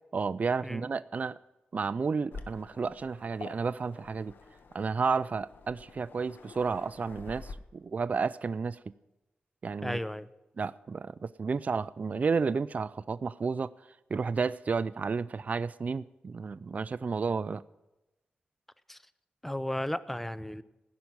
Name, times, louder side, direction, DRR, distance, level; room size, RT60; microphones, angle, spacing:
voice 1, 0.1-1.4 1.7-4.3 4.7-8.8 9.6-10.0 10.6-13.7 14.1-17.6, right 5 dB, 45° right, 15 dB, 0.4 m, -31 dB
Waves surf, 2.3-7.5, left 4 dB, 75° left, 1.0 m, -48 dB
voice 2, 9.8-10.3 18.9-19.0 19.4-20.6, left 1 dB, 5° left, 15 dB, 0.6 m, -34 dB
15.5 x 5.8 x 9.6 m, 0.99 s
wide cardioid pair, 90°, 4 cm